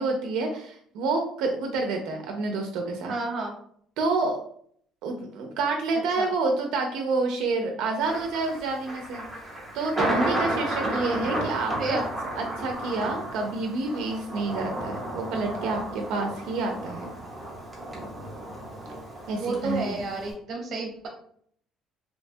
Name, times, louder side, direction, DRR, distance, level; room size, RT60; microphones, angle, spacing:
voice 1, 0.0-3.1 4.0-4.4 5.0-9.2 9.7-12.0 12.4-17.0 19.3-20.0, right 3 dB, 80° right, 3 dB, 0.4 m, -28 dB
voice 2, 3.1-3.6 6.2-6.3 11.8-12.0 19.3-21.1, right 2 dB, 40° right, 1 dB, 0.7 m, -31 dB
Thunder, 8.0-20.3, right 1 dB, 5° right, 0.7 m, -33 dB
2.8 x 2.2 x 2.6 m, 0.62 s
cardioid pair, 165°, 0 cm